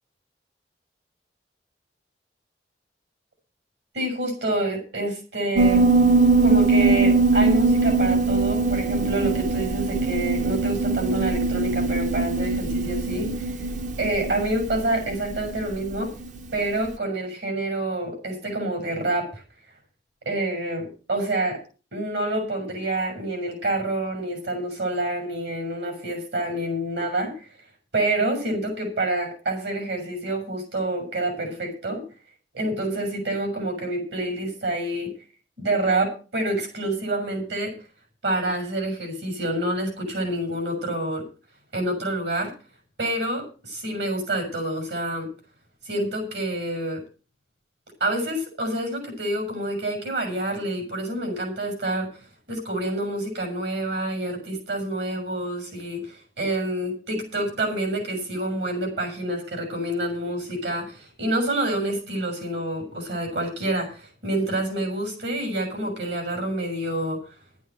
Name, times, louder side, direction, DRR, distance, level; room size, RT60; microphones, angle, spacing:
voice 1, 3.9-5.9 6.4-13.7 14.0-16.1 16.5-19.3 20.2-21.6 21.9-27.5 27.9-32.0 32.5-35.1 35.6-37.7 38.2-41.2 41.7-42.5 43.0-45.3 45.8-47.0 48.0-52.1 52.5-67.2, right 1 dB, 70° right, 4 dB, 6.4 m, -27 dB
Piano, 5.6-16.3, right 3 dB, 45° right, 0.8 m, -21 dB
12.0 x 9.4 x 6.2 m, 0.35 s
head